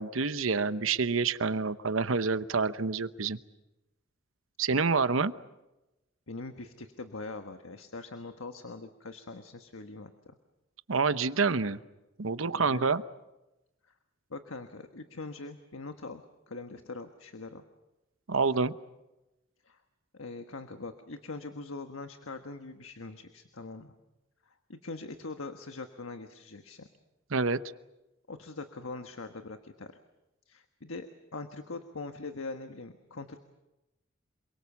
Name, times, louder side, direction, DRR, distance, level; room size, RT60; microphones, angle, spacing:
voice 1, 0.0-3.4 4.6-5.3 10.9-11.8 12.2-13.0 18.3-18.7 27.3-27.6, right 4 dB, 75° right, 13 dB, 0.9 m, -27 dB
voice 2, 6.3-10.4 12.6-12.9 14.3-17.6 19.6-19.8 20.1-23.9 24.4-26.9 28.3-30.0 30.5-33.4, left 3 dB, 90° left, 7 dB, 1.4 m, -42 dB
28.0 x 23.0 x 7.2 m, 0.99 s
head